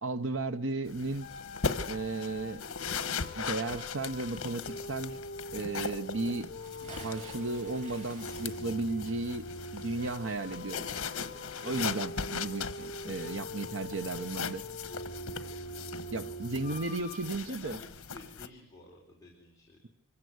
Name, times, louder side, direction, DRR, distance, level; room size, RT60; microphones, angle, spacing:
voice 1, 0.0-1.3 1.9-2.6 3.4-5.2 5.5-6.5 7.0-9.5 9.7-10.8 11.6-14.6 16.1-17.8, right 3 dB, 65° right, 0.8 m, -34 dB
sound 1, 0.9-18.5, left 5 dB, 80° left, 1.2 m, -39 dB
sound 2, 1.2-17.2, left 1 dB, 35° left, 5.4 m, -43 dB
Bathtub (filling or washing) / Splash splatter, 6.5-11.5 11.7-11.8, right 1 dB, 35° right, 6.4 m, -51 dB
voice 2, 16.3-19.9, left 2 dB, 15° left, 4.4 m, -54 dB
25.0 x 15.5 x 8.0 m
head